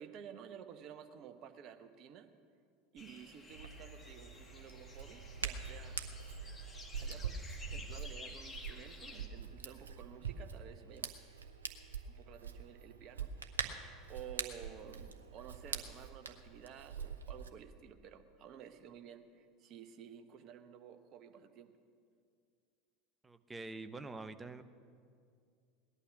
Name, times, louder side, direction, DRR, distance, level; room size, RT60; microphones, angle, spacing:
voice 1, 0.0-2.3 2.9-6.0 7.0-7.4 7.7-11.1 12.1-13.3 13.8-21.7, right 8 dB, 45° right, 7 dB, 1.2 m, -53 dB
sound 1, 3.0-9.3, left 3 dB, 20° left, 2.0 m, -53 dB
Hands, 3.5-17.5, right 6 dB, 80° right, 0.8 m, -44 dB
voice 2, 23.2-24.6, right 3 dB, 15° right, 10 dB, 0.9 m, -46 dB
18.5 x 11.5 x 6.1 m, 2.2 s
figure-of-eight pair, 75°, 0 cm